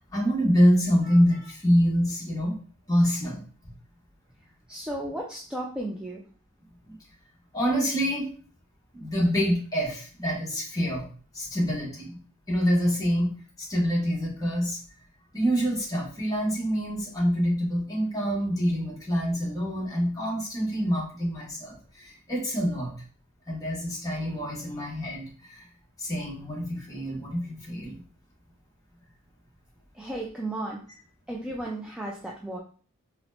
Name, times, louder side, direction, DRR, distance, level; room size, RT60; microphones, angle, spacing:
voice 1, 0.1-2.6 2.9-3.4 6.8-6.9 7.5-8.3 8.9-11.1 11.3-12.2 12.5-13.3 13.6-14.8 15.3-22.9 23.5-25.7 26.0-28.0, equal, 20° left, -4 dB, 1.1 m, -26 dB
voice 2, 4.7-6.2 29.9-30.8 31.3-32.6, right 1 dB, 5° right, -2 dB, 0.3 m, -34 dB
4.2 x 2.0 x 2.7 m, 0.41 s
head